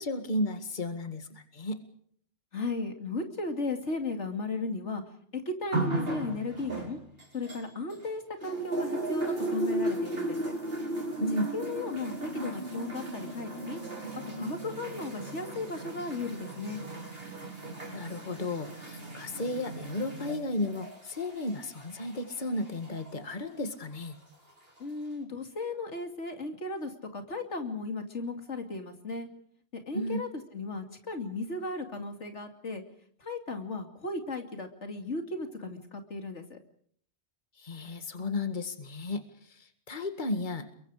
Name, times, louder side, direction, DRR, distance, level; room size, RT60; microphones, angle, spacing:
voice 1, 0.0-1.8 11.2-11.5 17.8-24.2 29.9-30.2 37.6-39.2 39.5-40.7, left 1 dB, 45° left, 8 dB, 2.1 m, -33 dB
voice 2, 2.5-5.0 5.3-7.0 7.3-10.5 11.5-13.8 14.3-16.8 24.8-29.3 29.7-32.8 33.2-36.6, left 3 dB, 85° left, 5 dB, 2.9 m, -35 dB
sound 1, 5.7-8.1 8.4-23.1 24.0-24.1, right 2 dB, 55° right, 5.2 m, -36 dB
29.5 x 23.0 x 5.0 m, 0.63 s
omnidirectional pair, 1.2 m